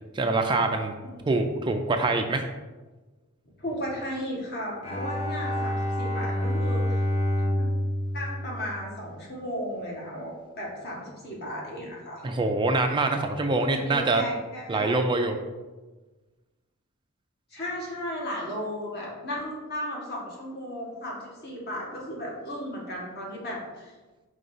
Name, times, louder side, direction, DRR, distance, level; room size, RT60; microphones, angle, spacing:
voice 1, 0.1-0.9 1.3-2.4 12.2-14.2 14.7-15.4, right 2 dB, 20° right, 5 dB, 0.4 m, -24 dB
voice 2, 3.6-7.0 7.5-7.7 8.1-12.2 13.5-15.0 17.5-24.0, equal, 50° left, -3 dB, 1.6 m, -35 dB
Bowed string instrument, 4.8-9.3, equal, 30° left, 1.0 m, -28 dB
5.2 x 3.3 x 5.4 m, 1.2 s
head